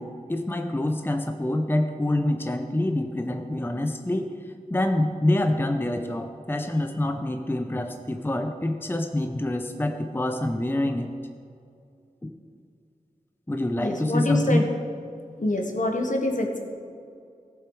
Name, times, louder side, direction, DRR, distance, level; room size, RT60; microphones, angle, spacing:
voice 1, 0.0-4.3 4.7-11.2 12.2-12.3 13.5-14.7, left 1 dB, 15° left, 6 dB, 0.6 m, -26 dB
voice 2, 13.8-14.6 15.4-16.6, left 1 dB, 60° left, 2 dB, 1.4 m, -25 dB
16.0 x 6.9 x 4.7 m, 2.5 s
wide cardioid pair, 70°, 15 cm